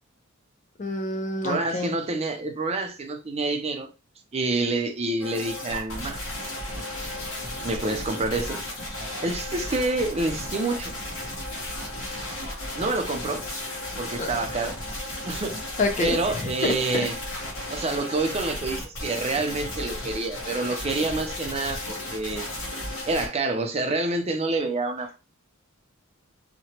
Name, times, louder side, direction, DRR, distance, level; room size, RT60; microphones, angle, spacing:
voice 1, 0.8-1.9 14.2-14.3 15.8-17.4, left 2 dB, 35° left, 0.5 m, -28 dB
voice 2, 1.4-3.9 4.3-6.2 7.6-8.6 9.2-10.9 12.8-13.4 14.0-14.8 15.3-15.6 16.0-17.2 17.7-22.5 23.1-25.2, right 2 dB, 30° right, 0.5 m, -27 dB
sound 1, 5.2-23.3, left 1 dB, 65° left, 1.3 m, -34 dB
2.8 x 2.2 x 2.8 m
head